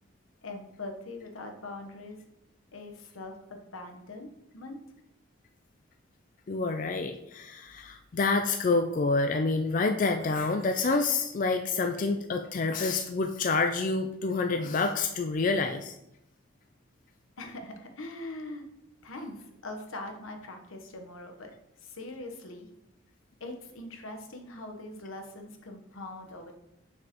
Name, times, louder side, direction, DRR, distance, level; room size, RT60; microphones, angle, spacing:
voice 1, 0.4-2.3 2.7-4.8 17.4-18.7 19.0-21.5 21.8-22.7 23.4-26.5, left 2 dB, 85° left, 4 dB, 1.1 m, -42 dB
voice 2, 6.5-15.9, left 3 dB, 40° left, 6 dB, 0.4 m, -28 dB
7.2 x 6.3 x 3.0 m, 0.81 s
head